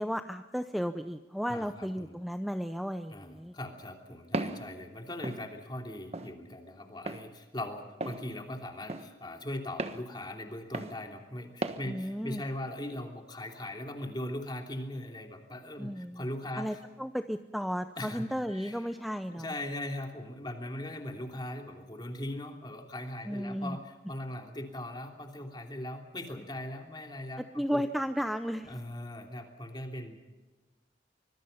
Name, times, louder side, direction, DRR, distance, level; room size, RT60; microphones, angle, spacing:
voice 1, 0.0-3.5 11.8-12.4 15.8-16.2 16.6-19.5 23.3-23.8 27.4-28.8, equal, ahead, 8 dB, 0.6 m, -34 dB
voice 2, 1.5-2.1 3.1-16.8 18.0-18.2 18.5-18.8 19.3-27.8 28.7-30.2, left 1 dB, 25° left, 3 dB, 3.1 m, -40 dB
Walk footsteps, 4.3-4.6 5.2-5.4 6.1-6.3 7.1-7.2 8.0-8.2 8.9-9.1 9.8-10.0 10.7-10.9 11.6-11.8, right 2 dB, 35° right, 1.4 m, -34 dB
25.0 x 22.0 x 5.7 m, 1.2 s
head